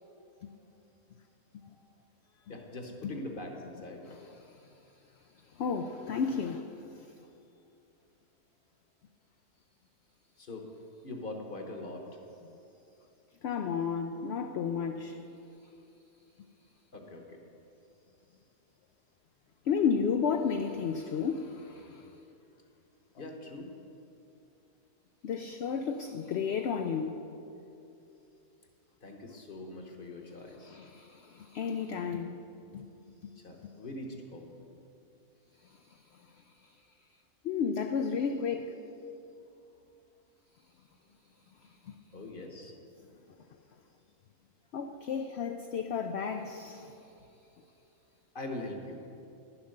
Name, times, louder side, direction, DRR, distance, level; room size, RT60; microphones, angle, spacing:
voice 1, 2.3-4.1 10.4-10.7 11.0-12.2 16.9-17.4 23.2-23.7 29.0-30.8 33.4-34.6 41.0-41.2 41.9-42.7 48.3-49.1, left 2 dB, 40° left, 3 dB, 1.1 m, -42 dB
voice 2, 4.1-4.7 5.5-7.1 13.4-15.2 19.6-22.2 25.2-27.1 30.6-32.4 32.7-32.9 33.2-33.3 33.6-33.7 35.6-36.8 37.4-38.8 41.8-41.9 44.7-47.0, left 6 dB, 70° left, 6 dB, 0.6 m, -33 dB
10.5 x 7.4 x 6.5 m, 2.8 s
omnidirectional pair, 1.6 m